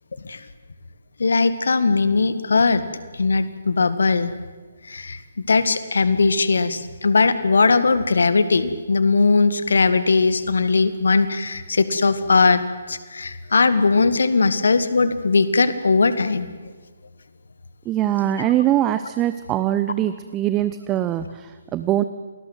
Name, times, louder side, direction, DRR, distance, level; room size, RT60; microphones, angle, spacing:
voice 1, 1.2-2.8 3.2-4.3 4.9-5.2 5.5-12.6 12.9-16.5 18.4-18.5, left 4 dB, 60° left, 13 dB, 1.9 m, -19 dB
voice 2, 17.9-22.0, right 12 dB, 15° right, 12 dB, 0.7 m, -22 dB
28.5 x 20.0 x 7.9 m, 1.4 s
figure-of-eight pair, 140°, 0 cm